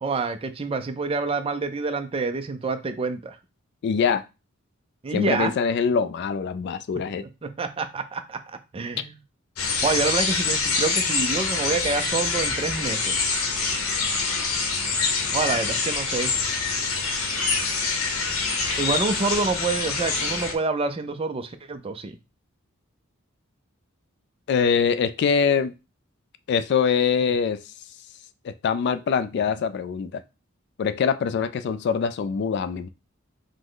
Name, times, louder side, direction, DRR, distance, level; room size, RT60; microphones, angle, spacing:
voice 1, 0.0-3.4 5.0-5.5 7.2-9.1 9.8-13.2 15.3-16.3 18.8-22.1, right 3 dB, 25° right, 0.4 m, -27 dB
voice 2, 3.8-4.2 5.1-7.3 24.5-25.7 26.5-27.6 28.4-30.2 30.8-32.9, left 6 dB, 55° left, 0.3 m, -23 dB
sound 1, 9.6-20.5, left 4 dB, 85° left, 0.8 m, -25 dB
5.0 x 2.1 x 3.8 m
head